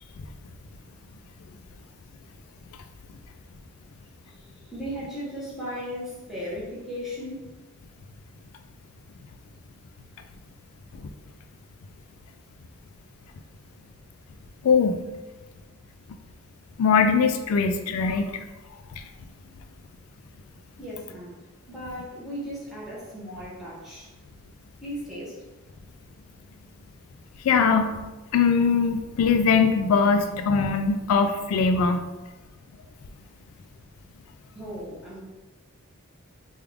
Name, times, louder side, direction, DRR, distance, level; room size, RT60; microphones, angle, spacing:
voice 1, 4.2-7.5 20.8-21.4 21.7-24.1 24.8-25.4 34.5-35.2, equal, ahead, -8 dB, 1.0 m, -36 dB
voice 2, 14.6-15.0 16.8-18.3 27.4-27.9 28.3-32.1, left 5 dB, 80° left, 7 dB, 0.3 m, -21 dB
3.5 x 2.3 x 3.4 m, 1.1 s
head